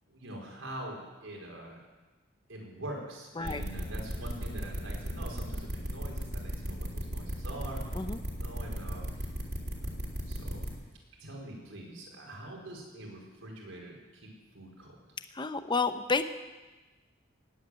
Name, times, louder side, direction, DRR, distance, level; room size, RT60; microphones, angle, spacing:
voice 1, 0.1-1.8 2.5-8.0 8.3-9.3 9.7-9.9 10.3-10.6 11.2-15.0, right 1 dB, 85° right, -1 dB, 4.9 m, -44 dB
sound 1, 3.4-10.7, equal, 50° right, 3.2 m, -35 dB
voice 2, 15.4-16.2, left 4 dB, 25° left, 10 dB, 0.8 m, -30 dB
17.0 x 8.7 x 9.7 m, 1.2 s
head